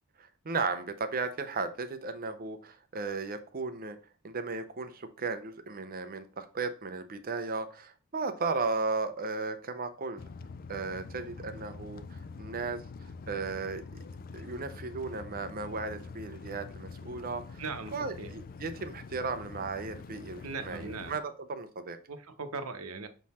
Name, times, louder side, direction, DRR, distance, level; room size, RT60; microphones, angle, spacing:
voice 1, 0.2-4.0 4.2-10.2 10.7-13.8 14.3-17.6 17.9-21.2 21.5-22.0, right 4 dB, 45° right, 9 dB, 0.7 m, -35 dB
sound 1, 10.2-21.2, left 4 dB, 45° left, 0.4 m, -45 dB
voice 2, 17.6-18.3 20.4-21.2 22.1-23.1, right 4 dB, 85° right, 8 dB, 0.8 m, -39 dB
6.2 x 3.8 x 4.2 m, 0.36 s
head